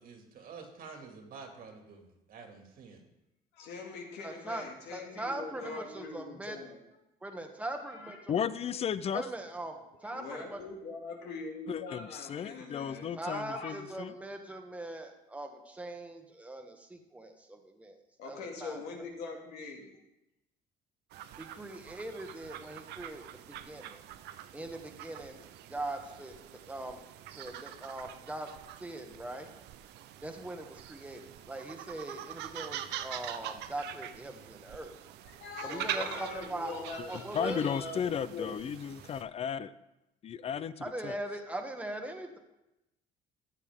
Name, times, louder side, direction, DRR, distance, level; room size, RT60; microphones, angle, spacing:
voice 1, 0.0-3.1, right 5 dB, 60° right, 3 dB, 2.2 m, -49 dB
voice 2, 3.5-6.8 7.8-8.2 10.0-13.7 18.2-19.9 35.3-38.5, left 4 dB, 85° left, 1 dB, 2.2 m, -43 dB
voice 3, 4.2-6.6 7.2-8.3 9.1-10.6 13.2-18.0 18.2-19.1 21.4-24.0 24.5-27.0 27.3-28.5 28.8-29.5 30.2-34.9 35.6-36.7 37.1-37.6 40.8-42.4, right 1 dB, 10° right, 4 dB, 1.3 m, -41 dB
voice 4, 8.3-9.2 11.7-14.1 37.3-39.7 40.2-41.2, left 8 dB, 35° left, 16 dB, 0.5 m, -34 dB
sound 1, 21.1-39.2, right 11 dB, 80° right, 0.6 m, -44 dB
13.5 x 8.2 x 3.6 m, 0.93 s
cardioid pair, 110°, 17 cm